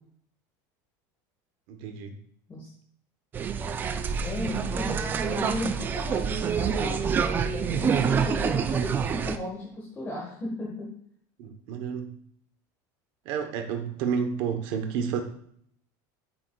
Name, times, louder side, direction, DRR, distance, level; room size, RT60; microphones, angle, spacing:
voice 1, 1.7-2.2 11.4-12.1 13.2-15.2, right 7 dB, 55° right, 6 dB, 1.0 m, -30 dB
sound 1, 3.3-9.4, right 6 dB, 20° right, 0.4 m, -27 dB
voice 2, 4.2-10.9, left 1 dB, 20° left, -4 dB, 1.4 m, -35 dB
13.5 x 6.4 x 2.3 m, 0.65 s
cardioid pair, 170°, 10 cm